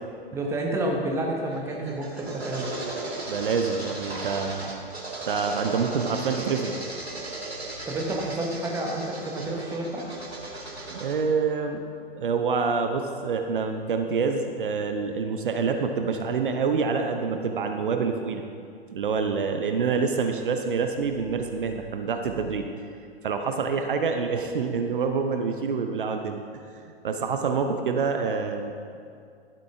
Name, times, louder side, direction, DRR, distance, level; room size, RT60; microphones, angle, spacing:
voice 1, 0.3-2.7 7.9-10.0, right 1 dB, 10° right, 0 dB, 1.0 m, -29 dB
sound 1, 1.5-11.1, right 2 dB, 80° right, 1.6 m, -36 dB
voice 2, 3.3-4.9 5.3-6.8 10.8-11.8 12.1-18.4 18.9-22.7 23.2-26.4 26.8-28.7, right 5 dB, 55° right, 6 dB, 0.7 m, -27 dB
12.0 x 7.8 x 3.6 m, 2.4 s
figure-of-eight pair, 110°, 31 cm